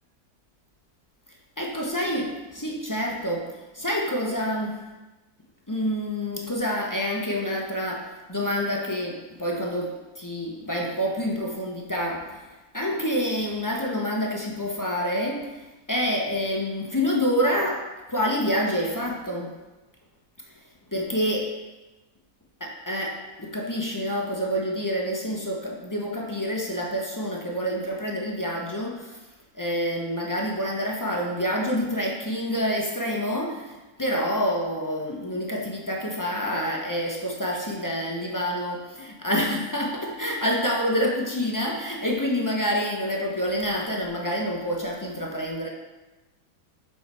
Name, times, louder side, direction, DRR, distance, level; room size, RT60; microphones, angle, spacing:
voice 1, 1.6-3.4 3.7-4.8 5.7-12.3 12.7-15.5 15.9-19.5 20.9-21.4 22.6-29.2 29.6-45.7, equal, 20° left, -2 dB, 0.6 m, -27 dB
7.0 x 4.8 x 4.7 m, 1.1 s
omnidirectional pair, 1.8 m